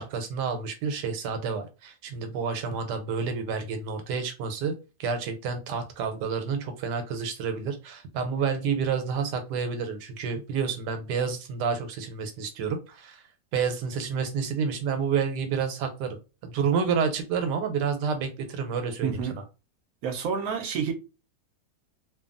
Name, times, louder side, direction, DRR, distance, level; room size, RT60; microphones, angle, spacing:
voice 1, 0.0-4.7 5.0-13.2 13.5-16.2 16.4-19.4, right 6 dB, 90° right, 1.2 m, -29 dB
voice 2, 19.0-19.4 20.0-20.9, right 6 dB, 70° right, 1.0 m, -29 dB
3.0 x 2.2 x 2.5 m
omnidirectional pair, 1.8 m